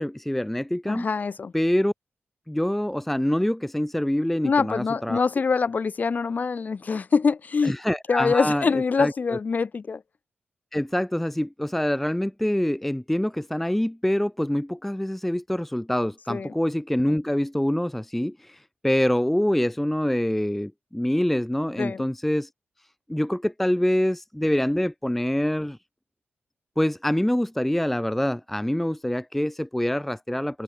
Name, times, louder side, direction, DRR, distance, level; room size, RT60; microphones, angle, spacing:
voice 1, 0.0-1.1 1.5-1.9 2.5-5.2 7.6-9.4 10.7-22.5 23.1-25.8 26.8-30.6, left 1 dB, 5° left, 0.6 m, -25 dB
voice 2, 0.9-1.5 4.4-7.7 8.1-10.0 16.3-16.5 21.8-22.0, left 5 dB, 45° left, 4.1 m, -24 dB
wide cardioid pair, 110°, 4 cm